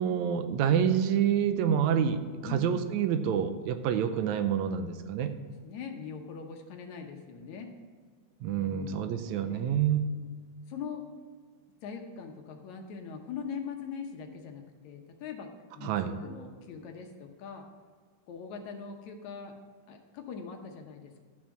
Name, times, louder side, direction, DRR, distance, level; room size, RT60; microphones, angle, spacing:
voice 1, 0.0-5.3 8.4-10.1 15.8-16.1, right 8 dB, 75° right, 9 dB, 1.9 m, -27 dB
voice 2, 5.6-7.7 8.6-9.0 9.4-9.6 10.1-10.3 10.7-11.1 11.8-17.7 18.3-19.5 19.9-21.2, left 6 dB, 70° left, 3 dB, 2.2 m, -42 dB
13.0 x 6.1 x 6.0 m, 1.5 s
omnidirectional pair, 3.6 m